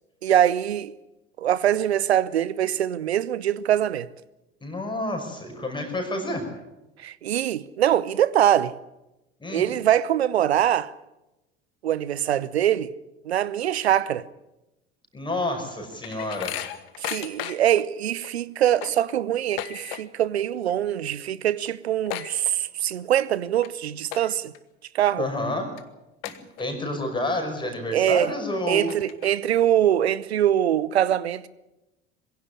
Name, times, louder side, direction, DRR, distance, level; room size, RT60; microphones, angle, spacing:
voice 1, 0.2-0.9 1.4-4.1 7.0-8.7 9.5-10.9 11.8-12.9 13.2-14.2 17.0-24.5 24.9-25.3 27.9-28.3 28.7-31.5, right 11 dB, 70° right, 0.9 m, -23 dB
voice 2, 4.6-6.5 9.4-9.7 15.1-16.6 25.2-25.7 26.2-26.3 26.6-28.9, left 1 dB, 15° left, 5.7 m, -29 dB
sound 1, 15.4-17.8 18.2-18.3 18.6-20.3 20.6-21.0 21.3-21.4 21.6-23.0 23.4-23.7 24.1-24.6 25.1-25.2 25.8-25.9 26.2-27.0 27.4-27.5 28.2-28.3 28.7-29.6, left 13 dB, 60° left, 1.6 m, -36 dB
22.0 x 16.5 x 9.9 m
figure-of-eight pair, 70°, 33 cm